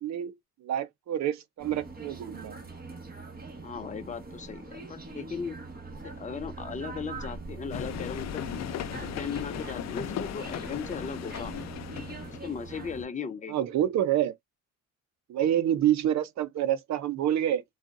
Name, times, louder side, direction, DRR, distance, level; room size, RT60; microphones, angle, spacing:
voice 1, 0.0-0.3 0.6-2.6 13.5-14.3 15.3-17.6, right 11 dB, 65° right, 0.7 m, -27 dB
sound 1, 1.6-13.0, right 3 dB, 30° right, 1.5 m, -42 dB
voice 2, 3.6-5.6 6.0-8.4 9.0-11.5 12.4-13.6, left 6 dB, 25° left, 0.7 m, -37 dB
sound 2, 7.7-12.5, left 10 dB, 60° left, 0.6 m, -37 dB
3.8 x 2.4 x 2.5 m
cardioid pair, 90°, 30 cm